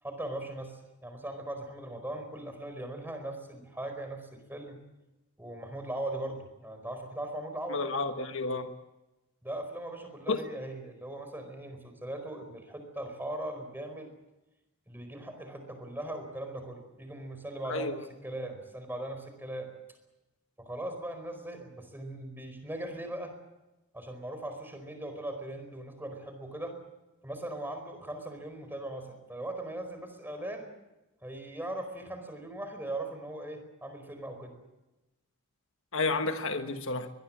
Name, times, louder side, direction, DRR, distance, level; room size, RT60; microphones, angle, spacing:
voice 1, 0.0-4.8 5.4-7.8 9.4-14.1 14.9-19.7 20.6-23.3 23.9-26.8 27.2-30.7 31.2-34.6, right 1 dB, 10° right, 4.6 m, -39 dB
voice 2, 7.7-8.7 10.3-10.4 17.7-18.0 35.9-37.1, left 3 dB, 60° left, 1.4 m, -31 dB
23.5 x 21.5 x 7.5 m
head